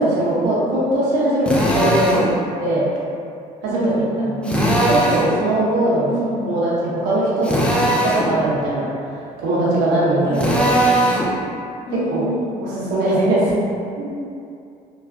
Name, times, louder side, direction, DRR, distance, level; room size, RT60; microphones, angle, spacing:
voice 1, 0.0-2.2 2.6-2.9 3.6-6.1 6.4-7.7 8.0-10.7 11.9-12.3 12.6-13.5 14.0-14.1, right 1 dB, 80° right, -7 dB, 0.9 m, -20 dB
Drill, 1.4-2.3 4.4-5.3 7.4-8.3 10.3-11.3, right 1 dB, 5° left, 0.5 m, -19 dB
voice 2, 3.7-4.7 6.0-6.4 10.2-11.1 11.8-12.7, right 2 dB, 65° left, -9 dB, 1.4 m, -27 dB
3.2 x 2.3 x 2.6 m, 2.5 s
supercardioid pair, 75°, 18 cm